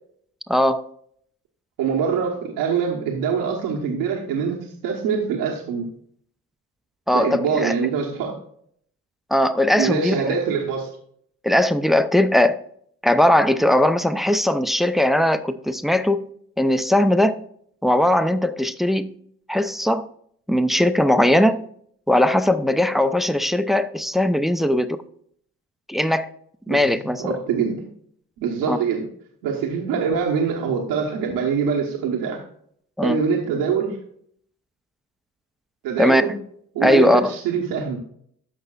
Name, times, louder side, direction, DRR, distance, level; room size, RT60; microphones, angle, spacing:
voice 1, 0.5-0.8 7.1-7.7 9.3-10.3 11.4-12.6 13.0-16.3 16.6-17.4 17.8-19.1 19.5-20.1 20.5-21.6 22.1-25.0 25.9-26.3 26.7-27.4 28.7-28.8 33.0-33.2 36.0-36.3 36.8-37.4, left 1 dB, ahead, 12 dB, 0.5 m, -19 dB
voice 2, 1.8-5.9 7.1-8.4 9.8-10.9 26.7-27.8 28.4-29.1 29.4-32.4 33.0-34.0 35.8-36.3 36.7-38.0, right 6 dB, 80° right, -1 dB, 1.1 m, -24 dB
13.5 x 5.5 x 2.4 m, 0.65 s
hypercardioid pair, 45°, 40 cm